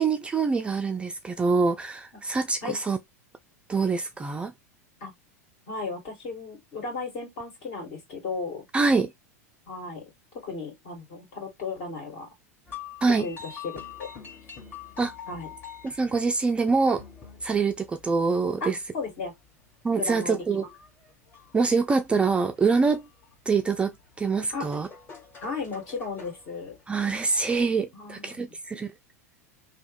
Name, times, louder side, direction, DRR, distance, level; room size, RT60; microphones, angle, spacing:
voice 1, 0.0-3.0 3.7-4.5 8.7-9.1 13.0-13.3 15.0-15.1 15.8-17.0 17.4-18.8 19.8-20.7 21.5-23.1 23.5-23.9 24.2-24.9 26.9-28.9, right 4 dB, 15° right, 0.3 m, -25 dB
voice 2, 5.7-8.7 9.7-10.1 10.4-12.3 13.2-14.1 15.3-15.5 18.6-19.3 20.0-20.7 24.5-24.7 25.4-26.8 27.9-28.5, left 4 dB, 50° left, 2.0 m, -35 dB
sound 1, 12.7-27.7, left 7 dB, 25° left, 1.6 m, -47 dB
3.1 x 2.1 x 3.4 m
figure-of-eight pair, 90°, 8 cm